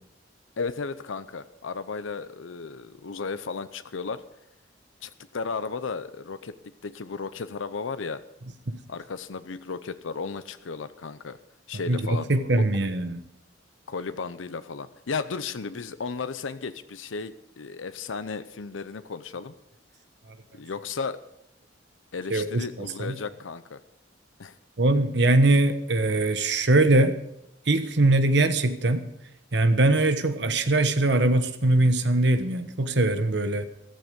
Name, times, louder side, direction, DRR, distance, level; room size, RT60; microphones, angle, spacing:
voice 1, 0.6-4.2 5.0-8.2 8.9-11.4 11.7-12.3 12.6-12.7 13.9-19.5 20.5-21.2 22.1-23.8 24.4-24.6, left 4 dB, 90° left, 0.7 m, -34 dB
voice 2, 11.9-13.2 22.3-23.2 24.8-27.1 27.7-29.1 29.5-33.7, right 2 dB, 60° right, 1.2 m, -22 dB
14.0 x 13.0 x 5.2 m
head